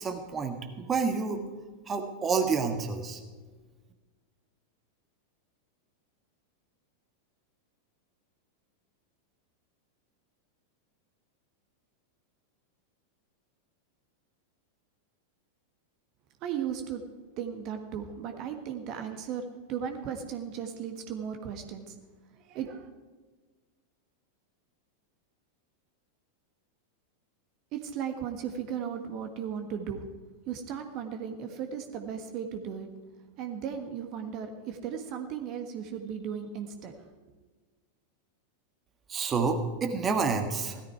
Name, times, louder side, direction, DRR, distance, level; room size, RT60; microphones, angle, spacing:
voice 1, 0.0-1.4 1.9-3.2 39.1-40.8, right 5 dB, 20° right, 5 dB, 1.5 m, -29 dB
voice 2, 16.4-17.0 17.4-22.0 22.3-22.9 27.7-30.1 30.5-32.9 33.4-36.9, right 8 dB, 40° right, 6 dB, 1.5 m, -36 dB
17.0 x 13.5 x 4.7 m, 1.4 s
figure-of-eight pair, 90°, 0 cm